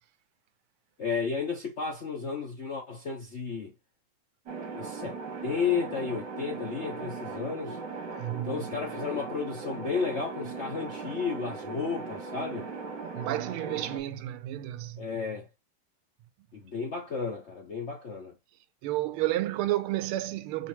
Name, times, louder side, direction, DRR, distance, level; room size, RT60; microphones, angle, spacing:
voice 1, 1.0-3.7 4.7-5.2 5.4-7.8 8.3-12.7 15.0-15.5 16.5-18.3, left 5 dB, 60° left, 0.7 m, -33 dB
sound 1, 4.5-14.0, right 4 dB, 60° right, 1.9 m, -38 dB
voice 2, 8.2-8.6 13.1-15.0 18.8-20.7, right 15 dB, 90° right, 1.5 m, -31 dB
5.0 x 3.1 x 3.1 m
omnidirectional pair, 2.3 m